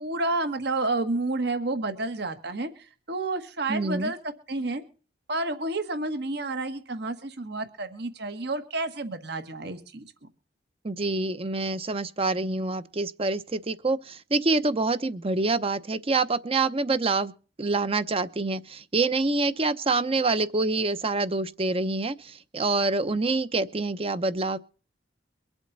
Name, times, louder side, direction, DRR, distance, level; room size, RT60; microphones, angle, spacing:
voice 1, 0.0-4.2 4.5-4.8 5.3-10.1, right 2 dB, 65° right, 1.6 m, -30 dB
voice 2, 3.7-4.1 10.8-17.3 17.6-24.6, right 3 dB, 30° right, 0.8 m, -26 dB
24.0 x 8.0 x 4.1 m
head